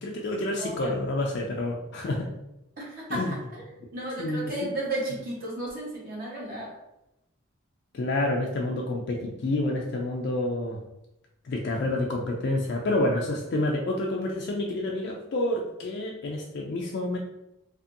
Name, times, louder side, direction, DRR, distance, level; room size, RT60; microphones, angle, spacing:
voice 1, 0.0-2.3 3.1-3.4 4.2-4.5 7.9-10.8 11.5-17.2, left 1 dB, 50° left, 0 dB, 0.3 m, -28 dB
voice 2, 0.6-1.0 2.8-3.6 3.9-6.7, right 1 dB, 40° right, -4 dB, 0.9 m, -34 dB
2.6 x 2.6 x 2.5 m, 0.90 s
head